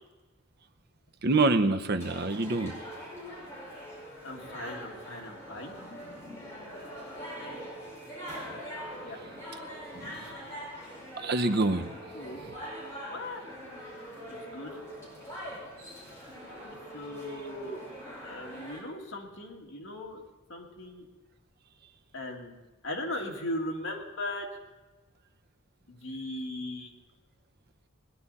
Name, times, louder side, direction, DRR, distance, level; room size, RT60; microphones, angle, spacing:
voice 1, 1.2-2.7 10.0-10.1 11.2-11.9, right 2 dB, 50° right, 9 dB, 0.8 m, -25 dB
sound 1, 2.0-18.8, equal, 15° left, 5.4 m, -43 dB
voice 2, 4.2-5.8 9.0-9.2 12.1-12.5 13.1-13.4 14.3-14.8 16.9-17.8 18.2-20.2 20.5-21.1 22.1-22.5 22.8-24.5 25.9-26.9, left 1 dB, 65° left, 0 dB, 2.3 m, -38 dB
19.5 x 11.0 x 4.2 m, 1.2 s
head